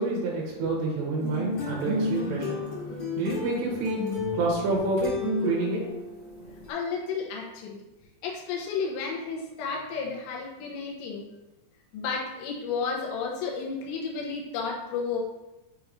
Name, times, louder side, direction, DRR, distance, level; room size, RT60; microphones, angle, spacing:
voice 1, 0.0-6.0 6.4-6.6, right 2 dB, 80° right, -4 dB, 3.3 m, -29 dB
sound 1, 1.2-6.7, left 2 dB, 60° left, 1.6 m, -32 dB
voice 2, 6.7-7.8 8.2-11.2 11.9-15.2, left 5 dB, 85° left, -1 dB, 3.1 m, -32 dB
7.7 x 2.6 x 4.7 m, 0.98 s
omnidirectional pair, 5.0 m